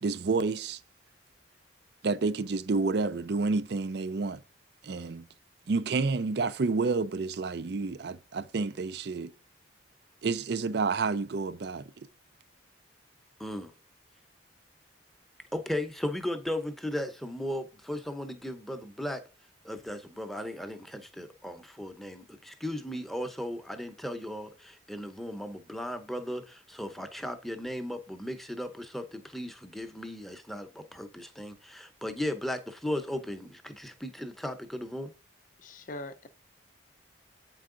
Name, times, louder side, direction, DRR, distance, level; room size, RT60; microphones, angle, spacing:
voice 1, 0.0-0.8 2.0-4.4 4.8-5.3 5.7-9.3 10.2-11.8, right 4 dB, 60° right, 0.4 m, -29 dB
voice 2, 13.4-13.7 15.5-19.2 19.6-35.1, left 1 dB, ahead, 0.7 m, -36 dB
voice 3, 35.6-36.3, left 2 dB, 45° left, 0.5 m, -41 dB
8.6 x 4.6 x 3.8 m
head